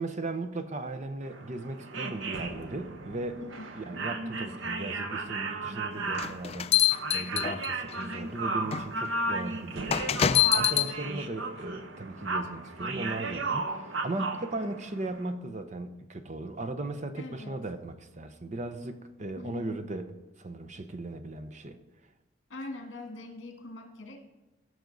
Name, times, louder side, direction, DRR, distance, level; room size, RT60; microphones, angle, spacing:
voice 1, 0.0-3.4 3.7-21.8, right 2 dB, 35° right, 8 dB, 0.7 m, -37 dB
sound 1, 1.2-15.3, right 3 dB, 75° right, 0.9 m, -35 dB
sound 2, 6.2-7.9 8.7-8.8 9.9-10.9, left 11 dB, 30° left, 0.3 m, -25 dB
voice 2, 17.1-17.6 19.4-19.8 22.5-24.3, left 2 dB, 70° left, 4 dB, 1.7 m, -42 dB
16.0 x 6.2 x 4.0 m, 1.1 s
head